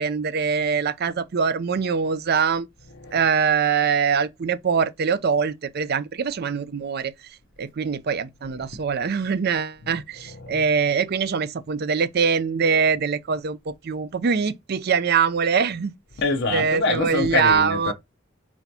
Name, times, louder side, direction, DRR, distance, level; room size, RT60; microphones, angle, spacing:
voice 1, 0.0-2.7 3.1-7.1 7.6-15.9 16.5-17.9, right 6 dB, 50° right, 0.4 m, -23 dB
voice 2, 10.3-10.6 16.2-17.9, left 3 dB, 65° left, 0.7 m, -25 dB
4.5 x 4.2 x 2.7 m
head